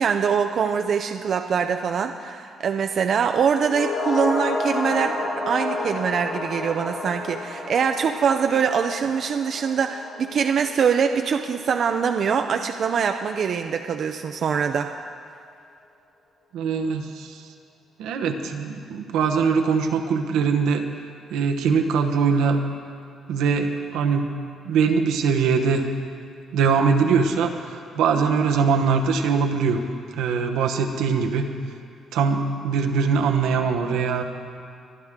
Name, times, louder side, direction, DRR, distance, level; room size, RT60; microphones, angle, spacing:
voice 1, 0.0-14.9, right 6 dB, 60° right, 5 dB, 0.5 m, -23 dB
sound 1, 3.6-12.1 12.4-12.5, left 2 dB, 85° left, 3.7 m, -31 dB
voice 2, 16.5-17.4 18.0-20.8 21.3-22.6 23.3-24.3 24.6-25.8 26.5-29.8 30.2-31.5 32.1-34.2, right 5 dB, 90° right, 4 dB, 1.0 m, -22 dB
23.5 x 10.5 x 3.7 m, 2.3 s
cardioid pair, 90°, 0 cm